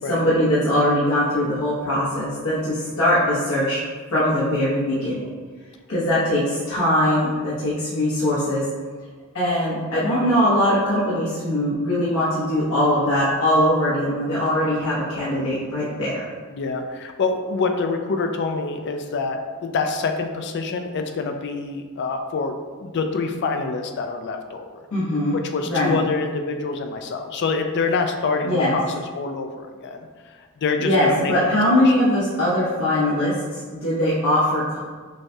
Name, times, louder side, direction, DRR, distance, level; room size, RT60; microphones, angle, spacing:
voice 1, 0.1-3.8 4.1-5.3 5.9-8.6 9.3-16.2 24.9-25.4 25.6-26.0 28.4-28.7 30.8-34.8, left 1 dB, 85° left, -10 dB, 1.1 m, -21 dB
voice 2, 16.5-22.5 22.8-24.7 25.3-28.9 29.1-30.1 30.6-31.3 31.8-31.9, left 4 dB, 50° left, 5 dB, 0.4 m, -26 dB
6.2 x 2.2 x 2.7 m, 1.5 s
head